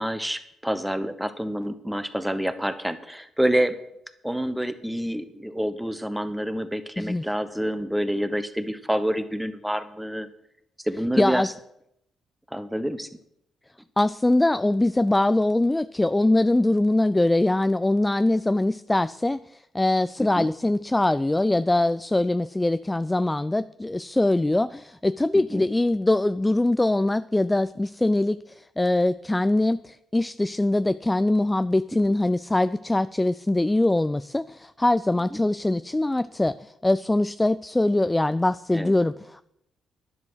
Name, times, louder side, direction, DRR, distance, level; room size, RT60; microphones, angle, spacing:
voice 1, 0.0-3.8 4.2-10.3 10.8-11.5 12.5-13.1 20.2-20.5 25.3-25.6 35.3-35.4 38.7-38.9, equal, 5° right, 11 dB, 1.1 m, -27 dB
voice 2, 11.2-11.5 14.0-39.4, left 2 dB, 15° left, 14 dB, 0.3 m, -23 dB
11.0 x 10.0 x 6.3 m, 0.77 s
cardioid pair, 95°, 0 cm